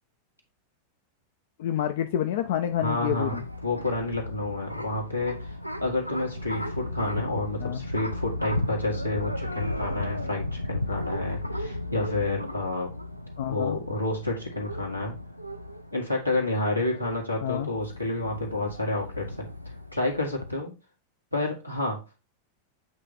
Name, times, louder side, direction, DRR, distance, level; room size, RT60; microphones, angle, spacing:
voice 1, 1.6-3.5 7.6-7.8 13.4-13.8 17.4-17.7, left 11 dB, 55° left, 7 dB, 0.5 m, -28 dB
sound 1, 2.4-20.5, left 1 dB, 90° right, 0.5 m, -35 dB
voice 2, 2.8-3.4 3.6-12.9 13.5-15.1 15.9-19.5 19.9-20.7 21.3-22.0, left 2 dB, 90° left, -1 dB, 1.8 m, -29 dB
8.0 x 3.3 x 4.0 m, 0.29 s
figure-of-eight pair, 90°, 0 cm